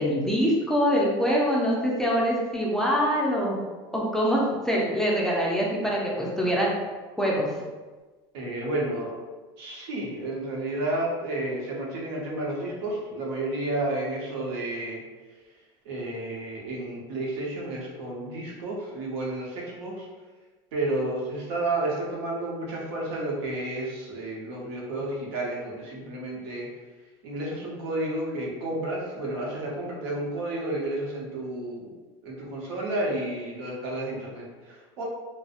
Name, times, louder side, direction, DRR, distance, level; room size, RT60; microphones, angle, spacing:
voice 1, 0.0-3.6 3.9-6.7 7.2-7.5, equal, 5° left, -4 dB, 0.4 m, -24 dB
voice 2, 8.3-9.1 9.6-15.0 15.8-20.1 20.7-26.7 27.2-31.9 32.2-35.0, right 2 dB, 80° right, -3 dB, 0.7 m, -31 dB
2.6 x 2.0 x 2.4 m, 1.3 s
supercardioid pair, 110°, 13 cm